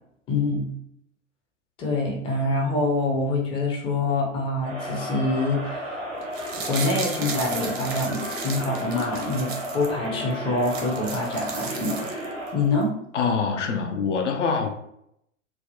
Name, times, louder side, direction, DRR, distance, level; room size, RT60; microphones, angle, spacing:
voice 1, 0.3-0.7 1.8-6.0 6.7-12.1 12.5-13.0, left 2 dB, 15° left, -1 dB, 0.5 m, -25 dB
Crowd, 4.6-12.7, equal, 80° right, 1.3 m, -33 dB
sound 1, 6.2-9.9 10.3-10.4 10.6-12.5 12.8-12.9, right 5 dB, 55° right, 0.7 m, -35 dB
voice 2, 13.1-14.7, left 5 dB, 65° left, 4 dB, 0.5 m, -24 dB
3.3 x 2.1 x 2.6 m, 0.74 s
figure-of-eight pair, 90°, 38 cm